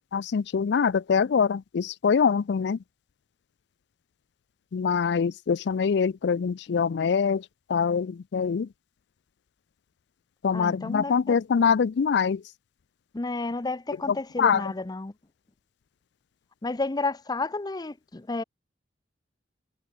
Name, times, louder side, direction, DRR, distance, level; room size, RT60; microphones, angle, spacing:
voice 1, 0.1-2.8 4.7-7.4 7.7-8.7 10.4-12.4 14.1-14.6, left 6 dB, 70° left, 0.4 m, -24 dB
voice 2, 10.5-11.4 13.1-15.1 16.6-18.4, left 3 dB, 20° left, 0.6 m, -31 dB
head